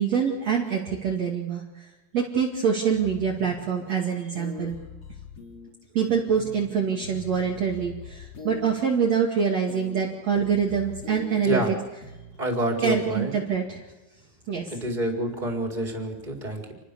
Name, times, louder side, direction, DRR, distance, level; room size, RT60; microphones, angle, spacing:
voice 1, 0.0-1.6 2.1-4.8 5.9-11.8 12.8-13.8 14.5-14.6, right 7 dB, 45° right, -1 dB, 3.3 m, -25 dB
sound 1, 2.9-3.7 4.3-5.7 6.0-8.7 9.7-10.0 10.3-11.7 12.0-12.4, left 4 dB, 40° left, 4.9 m, -42 dB
voice 2, 11.4-11.8 12.4-13.4 14.7-16.7, right 1 dB, 10° right, 2 dB, 4.2 m, -28 dB
29.0 x 21.5 x 7.0 m, 1.1 s
omnidirectional pair, 4.5 m